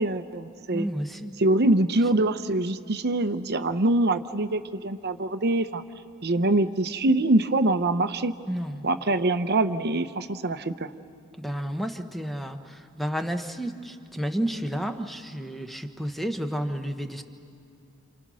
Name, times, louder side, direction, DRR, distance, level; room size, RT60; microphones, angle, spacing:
voice 1, 0.0-0.9 1.4-5.8 6.2-8.3 8.8-10.9, right 2 dB, 50° right, 10 dB, 0.8 m, -24 dB
voice 2, 0.7-1.4 8.5-8.8 11.4-17.2, equal, ahead, 6 dB, 1.1 m, -31 dB
28.5 x 28.0 x 6.3 m, 2.6 s
head